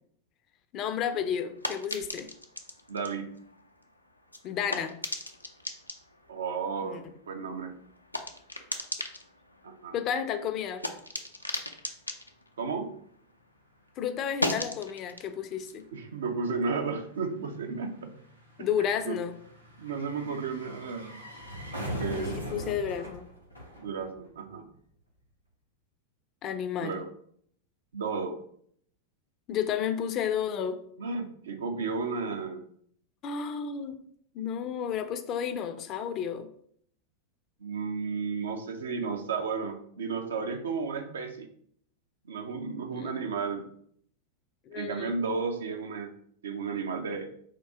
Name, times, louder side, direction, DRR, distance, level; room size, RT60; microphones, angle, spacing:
voice 1, 0.7-2.3 4.4-4.9 6.8-7.0 9.9-10.8 14.0-15.8 18.6-19.3 22.1-23.2 26.4-27.0 29.5-30.8 33.2-33.9 34.3-36.5 42.9-43.2 44.7-45.2, left 8 dB, 35° left, 9 dB, 0.5 m, -32 dB
sound 1, 0.8-13.6 13.9-17.1, left 1 dB, 90° left, 0.5 m, -39 dB
voice 2, 2.9-3.3 6.3-7.8 9.6-10.0 12.6-12.9 15.9-18.1 19.1-19.2 19.8-21.2 21.8-22.6 23.8-24.7 26.8-27.1 27.9-28.4 31.0-32.7 37.6-41.5 42.2-43.7 44.7-46.1 46.4-47.3, right 5 dB, 65° right, 5 dB, 0.6 m, -33 dB
sound 2, 13.8-13.9 14.1-24.5 24.7-24.8, equal, 90° right, 0.9 m, -42 dB
3.8 x 2.7 x 4.6 m, 0.65 s
figure-of-eight pair, 90°, 0 cm